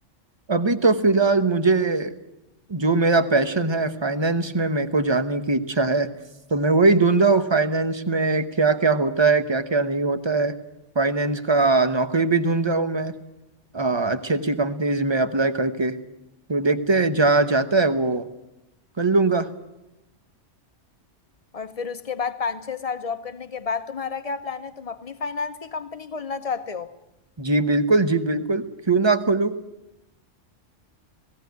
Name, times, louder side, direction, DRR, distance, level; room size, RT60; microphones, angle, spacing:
voice 1, 0.5-2.1 2.7-6.1 6.5-10.6 10.9-13.1 13.7-16.0 16.5-18.2 19.0-19.5 27.4-29.5, right 3 dB, 25° right, 0.9 m, -21 dB
voice 2, 21.5-26.9, left 5 dB, 35° left, 0.9 m, -30 dB
17.5 x 17.0 x 9.4 m
omnidirectional pair, 1.3 m